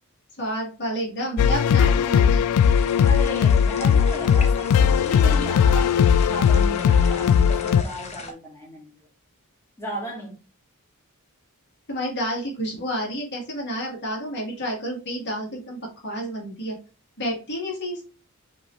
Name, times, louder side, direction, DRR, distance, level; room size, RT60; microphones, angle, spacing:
voice 1, 0.4-2.4 11.9-16.8 17.2-18.0, equal, 50° left, -1 dB, 1.8 m, -30 dB
sound 1, 1.4-7.8, left 7 dB, 85° left, 0.3 m, -18 dB
sound 2, 2.6-8.3, left 3 dB, 30° left, 0.8 m, -40 dB
voice 2, 3.0-8.9 9.8-10.4, equal, 10° left, -4 dB, 1.5 m, -35 dB
5.2 x 2.9 x 3.2 m, 0.34 s
head